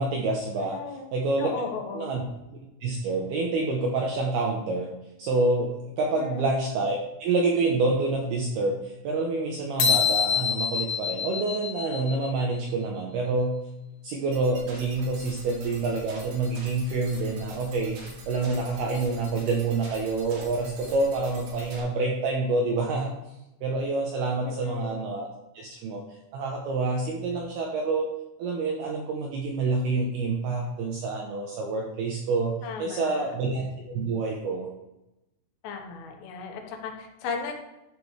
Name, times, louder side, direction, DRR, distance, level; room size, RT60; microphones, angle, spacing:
voice 1, 0.0-0.8 1.1-1.5 1.9-2.2 2.8-4.9 5.2-13.5 14.0-23.1 23.6-25.3 25.5-26.0 26.3-28.1 28.4-34.7, right 3 dB, 80° right, 0 dB, 2.3 m, -27 dB
voice 2, 0.6-1.1 1.4-2.1 6.2-6.4 24.4-25.0 32.6-33.3 35.6-37.5, left 4 dB, 90° left, 2 dB, 3.8 m, -35 dB
sound 1, 9.8-12.4, left 7 dB, 70° left, 2.5 m, -26 dB
sound 2, 14.3-21.8, right 2 dB, 55° right, 3.0 m, -45 dB
12.0 x 6.7 x 3.2 m, 0.93 s
omnidirectional pair, 5.7 m